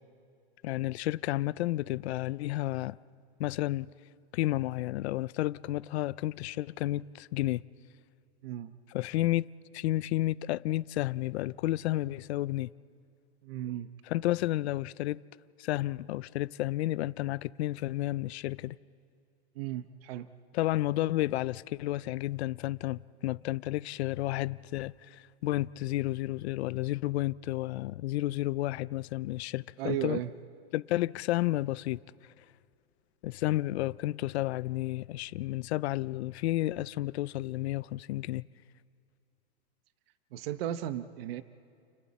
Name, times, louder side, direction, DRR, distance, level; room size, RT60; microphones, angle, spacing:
voice 1, 0.6-3.0 3.4-3.9 4.3-7.6 8.9-9.5 9.7-12.7 14.1-15.2 15.6-18.8 20.5-30.2 30.7-32.0 33.2-38.4, left 16 dB, 85° left, 0.5 m, -31 dB
voice 2, 8.4-8.7 13.4-13.9 19.5-20.3 29.8-30.3 40.3-41.4, right 12 dB, 65° right, 0.9 m, -35 dB
30.0 x 29.5 x 4.2 m
supercardioid pair, 155°, 32 cm